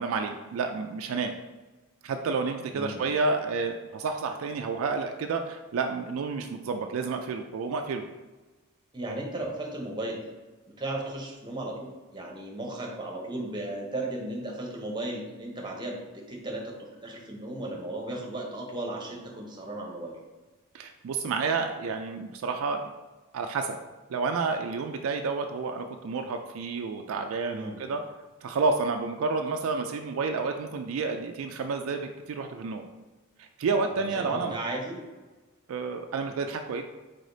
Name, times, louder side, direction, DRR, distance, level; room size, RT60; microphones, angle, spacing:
voice 1, 0.0-1.3 2.0-8.1 20.7-22.9 23.3-23.8 24.1-28.0 28.4-32.8 33.4-34.6 35.7-36.8, right 4 dB, 70° right, 5 dB, 0.3 m, -30 dB
voice 2, 2.7-3.1 8.9-10.2 10.8-20.2 27.5-27.8 34.2-35.0, right 1 dB, 20° right, 0 dB, 0.8 m, -35 dB
4.9 x 4.1 x 2.7 m, 1.2 s
head